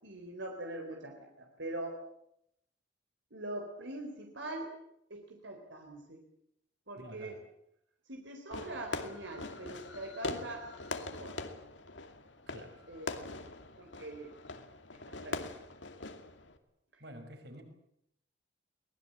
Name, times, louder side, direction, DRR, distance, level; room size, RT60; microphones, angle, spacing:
voice 1, 0.0-2.0 3.3-4.7 5.1-6.2 6.9-7.4 8.1-10.7 10.9-11.4 12.9-13.5 13.8-14.3 15.1-15.5, right 1 dB, 75° right, 2 dB, 4.1 m, -43 dB
voice 2, 7.0-7.4 12.5-12.9 17.0-17.6, right 1 dB, 60° right, 6 dB, 5.7 m, -49 dB
Fireworks, 8.5-16.6, left 2 dB, 75° left, 2.4 m, -42 dB
23.5 x 20.0 x 8.8 m, 0.75 s
head